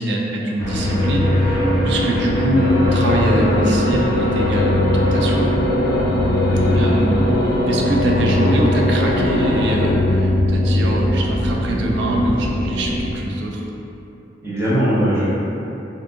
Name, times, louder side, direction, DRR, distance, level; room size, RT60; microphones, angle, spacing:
voice 1, 0.0-5.5 6.7-7.4 7.7-13.6, right 1 dB, 70° right, -1 dB, 0.4 m, -23 dB
sound 1, 0.6-13.1, left 1 dB, 25° left, 1.2 m, -20 dB
sound 2, 2.5-9.9, left 2 dB, 55° left, 0.5 m, -23 dB
voice 2, 6.4-6.9 14.4-15.2, right 1 dB, 15° right, -12 dB, 1.0 m, -20 dB
2.6 x 2.5 x 3.6 m, 3.0 s
head